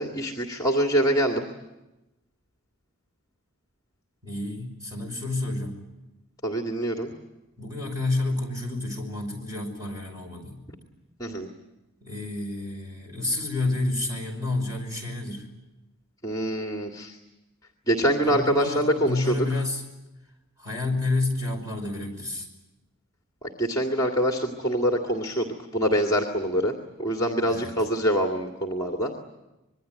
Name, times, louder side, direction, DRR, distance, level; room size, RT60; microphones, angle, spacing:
voice 1, 0.0-1.5 6.4-7.1 11.2-11.5 16.2-17.2 17.9-19.5 23.4-29.1, equal, 15° left, 2 dB, 2.1 m, -25 dB
voice 2, 4.2-5.8 7.6-10.6 12.0-15.5 18.2-19.8 20.6-22.5 27.5-27.7, left 2 dB, 15° right, 2 dB, 5.6 m, -29 dB
26.0 x 21.5 x 9.5 m, 1.0 s
head